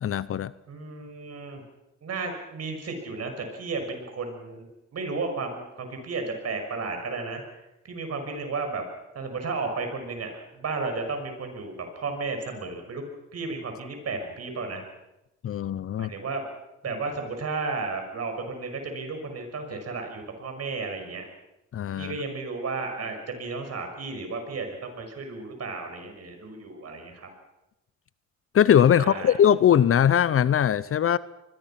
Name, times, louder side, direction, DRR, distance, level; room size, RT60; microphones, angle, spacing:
voice 1, 0.0-0.5 15.4-16.1 21.7-22.2 28.5-31.2, left 9 dB, 45° left, 18 dB, 0.7 m, -20 dB
voice 2, 0.7-1.6 2.0-7.4 7.8-8.8 9.1-13.0 13.3-14.8 16.0-16.5 16.8-21.3 21.9-27.3 28.9-29.3, right 3 dB, 55° right, 5 dB, 6.3 m, -33 dB
25.0 x 21.5 x 5.9 m, 0.95 s
cardioid pair, 90°, 30 cm